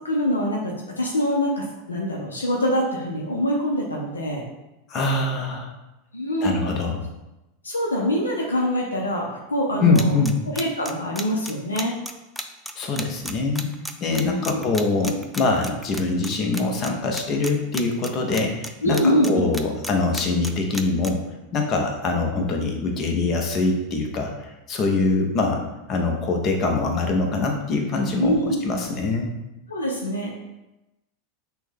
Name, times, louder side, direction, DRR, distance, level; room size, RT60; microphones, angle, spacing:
voice 1, 0.0-4.4 6.1-6.6 7.6-10.1 10.5-11.9 14.1-14.6 18.8-19.4 28.2-28.6 29.7-30.3, equal, 85° left, -1 dB, 0.6 m, -24 dB
voice 2, 4.9-5.7 6.4-7.0 9.8-10.4 12.8-13.7 14.0-19.0 19.2-21.2 21.5-25.6 25.9-28.3 28.6-29.3, left 3 dB, 40° left, 2 dB, 0.8 m, -23 dB
sound 1, 9.9-16.3 16.5-16.9 17.1-18.7 18.9-21.1, equal, ahead, 0.4 m, -32 dB
6.0 x 2.3 x 3.5 m, 0.98 s
figure-of-eight pair, 85°, 0 cm